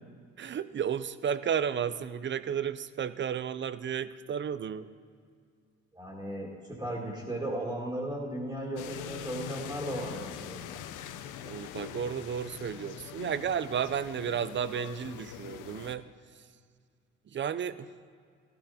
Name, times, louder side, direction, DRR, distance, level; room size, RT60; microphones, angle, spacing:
voice 1, 0.4-4.9 11.4-16.0 17.3-17.9, right 8 dB, 40° right, 15 dB, 0.5 m, -33 dB
voice 2, 5.9-10.9, right 1 dB, 10° right, -3 dB, 2.1 m, -36 dB
sound 1, 8.8-16.0, left 10 dB, 90° left, 0.6 m, -43 dB
13.0 x 12.0 x 4.2 m, 2.1 s
cardioid pair, 90°, 30 cm